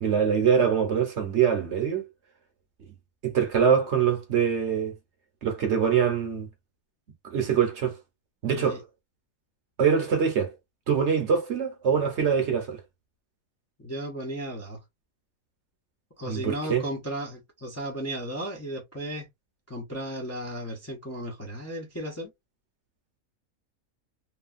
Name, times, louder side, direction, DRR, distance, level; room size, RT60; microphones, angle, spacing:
voice 1, 0.0-2.0 3.2-4.9 5.4-6.5 7.2-8.0 8.4-8.8 9.8-10.5 10.9-12.8 16.3-16.8, right 7 dB, 55° right, 1.0 m, -24 dB
voice 2, 8.5-8.8 13.8-14.8 16.2-19.3 19.7-22.3, right 1 dB, 20° left, 0.4 m, -35 dB
3.1 x 2.3 x 2.4 m
omnidirectional pair, 1.5 m